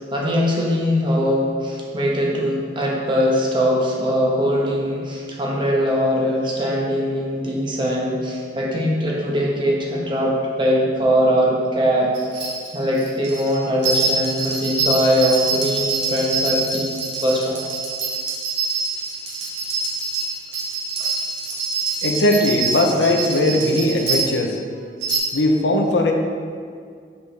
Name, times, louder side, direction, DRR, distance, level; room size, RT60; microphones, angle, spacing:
voice 1, 0.1-17.6 21.0-21.1, equal, 25° right, -3 dB, 0.9 m, -21 dB
sound 1, 12.1-24.4 25.0-25.2, right 4 dB, 70° right, 1.5 m, -25 dB
voice 2, 22.0-24.6 25.3-26.1, left 1 dB, 70° left, 2 dB, 0.6 m, -19 dB
6.0 x 5.2 x 3.3 m, 2.1 s
head